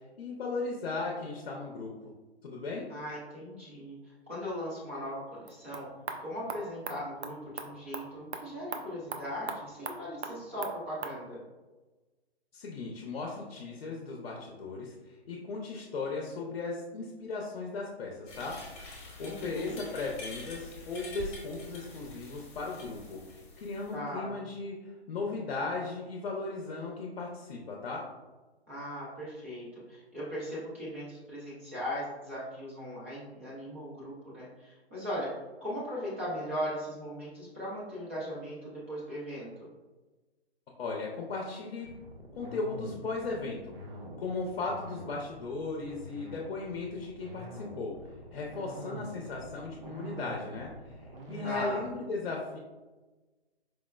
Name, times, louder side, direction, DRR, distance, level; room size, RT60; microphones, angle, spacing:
voice 1, 0.2-1.9 2.4-2.8 12.5-18.6 19.2-28.1 40.8-41.9 42.3-43.7 44.2-48.0 48.3-52.6, left 3 dB, 60° left, -1 dB, 0.6 m, -37 dB
voice 2, 2.9-5.9 6.2-11.4 19.2-19.8 23.9-24.3 28.7-35.3 35.6-39.7 51.4-51.8, equal, 15° right, -9 dB, 0.4 m, -38 dB
sound 1, 5.4-11.2, right 5 dB, 85° right, 0.5 m, -42 dB
sound 2, 18.3-23.9, left 2 dB, 25° left, 0.9 m, -46 dB
sound 3, 41.8-51.9, equal, 55° right, 0.8 m, -45 dB
4.6 x 2.1 x 2.2 m, 1.2 s
hypercardioid pair, 145°, 32 cm